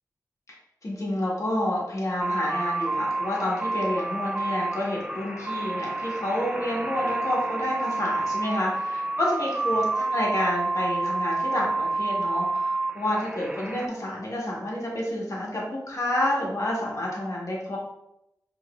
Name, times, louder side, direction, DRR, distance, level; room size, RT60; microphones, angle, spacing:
voice 1, 0.8-17.8, left 1 dB, 55° left, -4 dB, 1.4 m, -29 dB
sound 1, 2.2-13.9, right 2 dB, 10° right, 0.5 m, -29 dB
5.6 x 3.0 x 2.4 m, 0.84 s
cardioid pair, 50°, 7 cm